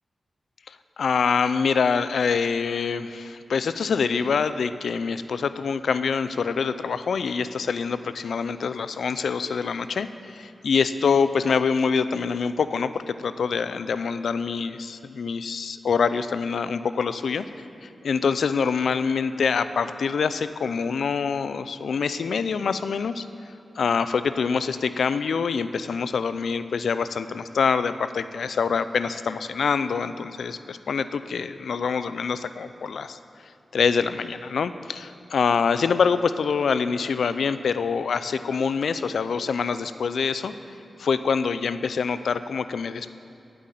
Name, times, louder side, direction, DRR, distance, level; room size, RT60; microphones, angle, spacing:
voice 1, 0.7-17.4 17.8-23.2 23.8-33.2 33.7-40.5 41.0-43.1, left 5 dB, 85° left, 12 dB, 0.4 m, -25 dB
8.3 x 7.9 x 9.1 m, 2.6 s
cardioid pair, 55°, 0 cm